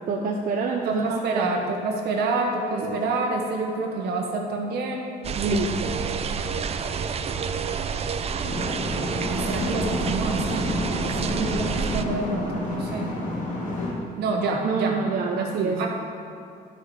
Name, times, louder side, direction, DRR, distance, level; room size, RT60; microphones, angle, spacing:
voice 1, 0.1-1.5 2.7-3.0 5.4-6.0 14.6-15.9, right 4 dB, 60° right, -1 dB, 0.9 m, -27 dB
voice 2, 0.8-5.1 9.3-10.8 11.3-13.1 14.2-15.0 15.4-15.9, right 3 dB, 75° right, 1 dB, 1.5 m, -27 dB
sound 1, 5.2-12.1, right 6 dB, 40° right, 0.5 m, -29 dB
sound 2, 8.4-13.9, left 1 dB, 50° left, 1.9 m, -30 dB
11.0 x 6.6 x 5.1 m, 2.4 s
cardioid pair, 110°, 17 cm